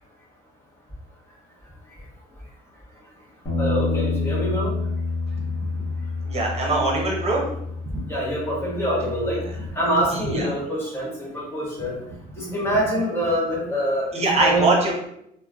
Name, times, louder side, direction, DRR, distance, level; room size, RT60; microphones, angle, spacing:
Bass guitar, 3.4-9.7, left 3 dB, 40° left, 1.2 m, -28 dB
voice 1, 3.6-4.7 8.1-9.4 9.7-12.0 12.4-14.7, equal, 15° left, -5 dB, 1.0 m, -25 dB
voice 2, 6.2-7.4 10.1-10.5 14.1-14.9, right 2 dB, 40° right, -1 dB, 0.8 m, -22 dB
3.0 x 2.2 x 2.4 m, 0.76 s
cardioid pair, 110°, 17 cm